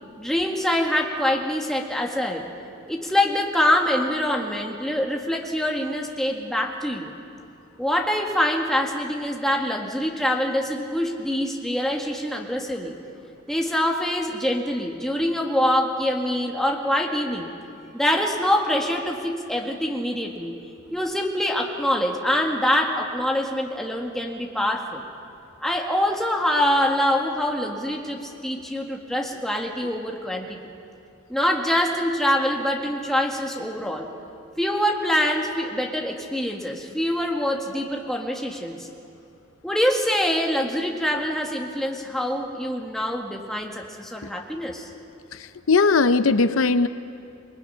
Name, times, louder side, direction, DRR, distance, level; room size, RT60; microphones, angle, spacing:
voice 1, 0.2-2.5 2.9-7.1 7.8-12.9 13.5-17.5 17.9-20.6 20.9-25.0 25.6-30.6 31.3-34.1 34.6-38.9 39.6-44.9, left 1 dB, ahead, 0 dB, 1.9 m, -25 dB
voice 2, 45.3-46.9, left 4 dB, 80° left, 12 dB, 0.6 m, -19 dB
28.0 x 21.5 x 5.7 m, 2.5 s
head